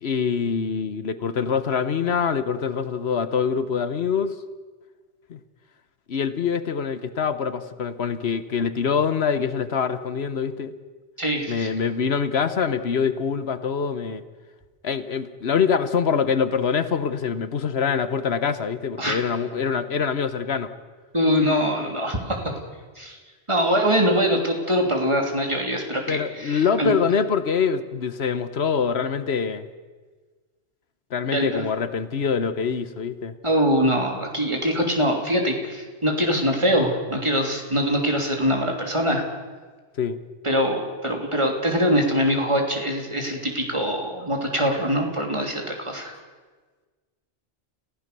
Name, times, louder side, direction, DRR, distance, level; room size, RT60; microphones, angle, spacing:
voice 1, 0.0-4.4 5.3-5.4 6.1-10.7 11.5-14.2 14.8-20.7 26.1-29.7 31.1-33.3 40.0-40.2, left 6 dB, 75° left, 12 dB, 1.3 m, -24 dB
voice 2, 11.2-11.7 19.0-19.2 21.1-22.5 23.0-23.2 23.5-26.9 31.3-31.6 33.4-39.2 40.4-46.1, equal, 30° right, 2 dB, 3.2 m, -23 dB
29.0 x 15.5 x 6.8 m, 1.4 s
omnidirectional pair, 1.1 m